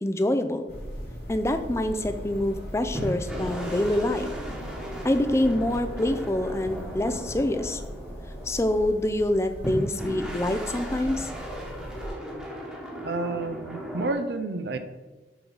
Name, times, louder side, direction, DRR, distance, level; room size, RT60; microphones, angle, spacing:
voice 1, 0.0-0.7 1.3-4.3 5.0-7.8 8.5-11.3, left 1 dB, 15° left, 9 dB, 0.4 m, -26 dB
sound 1, 0.7-12.1, equal, 70° left, 2.6 m, -39 dB
sound 2, 2.9-8.8 9.6-14.1, right 1 dB, 5° right, 1.2 m, -37 dB
voice 2, 13.0-14.8, right 3 dB, 65° right, 9 dB, 0.6 m, -30 dB
6.9 x 3.9 x 6.1 m, 1.2 s
head